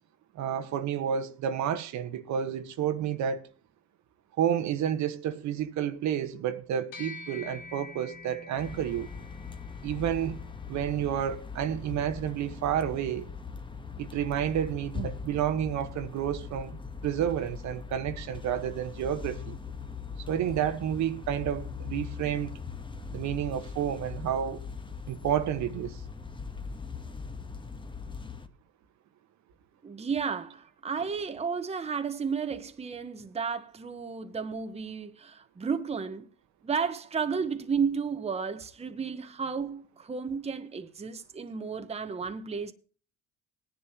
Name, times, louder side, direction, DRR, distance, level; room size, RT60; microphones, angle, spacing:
voice 1, 0.3-3.4 4.4-9.1 9.8-10.4 10.7-13.3 14.0-19.6 20.3-22.6 23.1-24.6 25.1-26.0, right 9 dB, 60° right, 1.2 m, -30 dB
sound 1, 6.9-16.5, left 3 dB, 80° left, 3.0 m, -49 dB
sound 2, 8.6-28.5, left 5 dB, 15° left, 1.2 m, -41 dB
voice 2, 29.8-36.3 36.6-42.7, right 6 dB, 20° right, 1.0 m, -33 dB
18.5 x 10.5 x 2.8 m
supercardioid pair, 90°, 32 cm